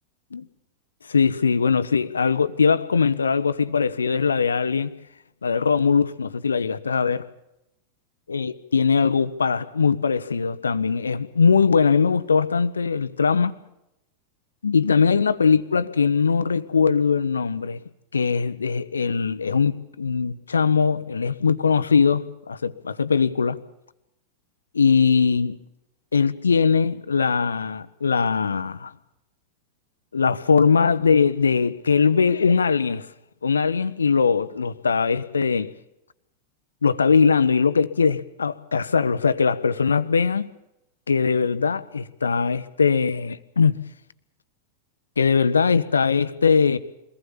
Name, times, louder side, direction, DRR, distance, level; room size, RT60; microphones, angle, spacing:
voice 1, 1.1-4.9 5.4-7.2 8.3-13.5 14.6-17.8 18.1-23.6 24.7-25.6 26.1-28.9 30.1-33.1 33.4-35.7 36.8-40.5 41.1-43.8 45.2-46.8, left 5 dB, 75° left, 1.0 m, -21 dB
22.5 x 19.0 x 7.3 m
figure-of-eight pair, 90°, 0 cm